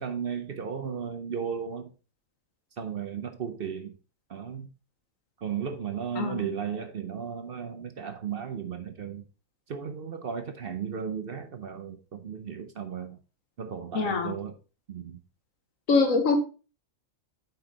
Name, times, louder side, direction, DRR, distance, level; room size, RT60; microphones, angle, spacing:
voice 1, 0.0-1.9 2.8-3.9 4.3-4.7 5.4-9.2 9.7-13.2 13.6-14.5 14.9-15.2, right 7 dB, 50° right, 0.8 m, -35 dB
voice 2, 6.2-6.5 13.9-14.3 15.9-16.4, left 4 dB, 75° left, 1.5 m, -24 dB
7.9 x 4.6 x 3.7 m
omnidirectional pair, 1.4 m